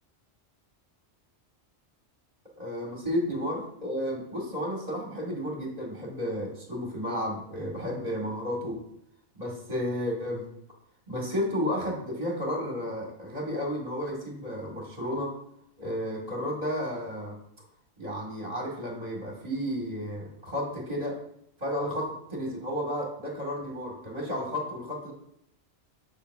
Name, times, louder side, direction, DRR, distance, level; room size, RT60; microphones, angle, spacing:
voice 1, 2.6-8.8 9.4-10.5 11.1-15.3 15.8-17.4 18.0-21.2 21.6-25.1, equal, 35° right, -2 dB, 2.1 m, -32 dB
7.0 x 6.2 x 2.7 m, 0.72 s
omnidirectional pair, 1.2 m